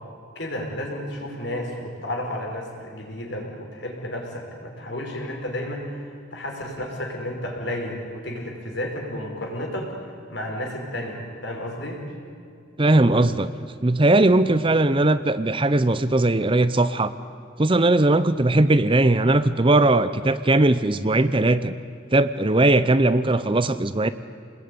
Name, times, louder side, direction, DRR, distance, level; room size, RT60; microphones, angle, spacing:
voice 1, 0.4-12.0, left 1 dB, 60° left, 1 dB, 5.5 m, -32 dB
voice 2, 12.8-13.5 13.8-17.1 17.6-21.7 22.1-24.1, right 2 dB, 25° right, 13 dB, 0.7 m, -19 dB
29.0 x 21.0 x 9.7 m, 2.4 s
head